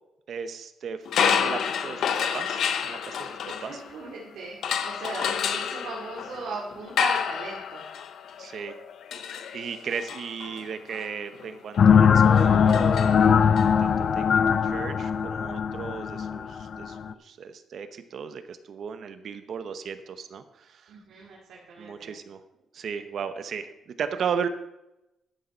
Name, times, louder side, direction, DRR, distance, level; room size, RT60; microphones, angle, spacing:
voice 1, 0.3-3.8 8.4-8.8 9.5-20.9 21.8-22.4 22.7-23.7 24.0-24.5, right 6 dB, 50° right, 10 dB, 0.7 m, -35 dB
sound 1, 1.1-4.2 4.6-13.6, left 7 dB, 65° left, 0.8 m, -30 dB
voice 2, 3.4-4.6 4.8-7.9 20.9-22.1, right 3 dB, 80° right, -4 dB, 2.4 m, -38 dB
sound 2, 11.8-17.1, left 7 dB, 45° left, 0.4 m, -20 dB
12.0 x 6.4 x 5.4 m, 0.91 s
cardioid pair, 160°, 0 cm